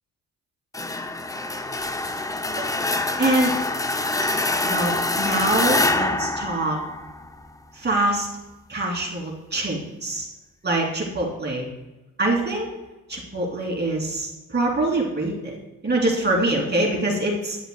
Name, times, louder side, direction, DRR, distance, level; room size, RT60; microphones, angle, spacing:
sound 1, 0.7-7.5, left 2 dB, 10° left, 0.5 m, -25 dB
voice 1, 3.2-3.5 4.6-6.8 7.8-8.3 8.7-10.2 10.6-11.7 12.2-12.7 13.1-15.6 15.8-17.6, right 2 dB, 30° right, -1 dB, 2.8 m, -24 dB
9.6 x 7.9 x 2.3 m, 1.0 s
cardioid pair, 75°, 34 cm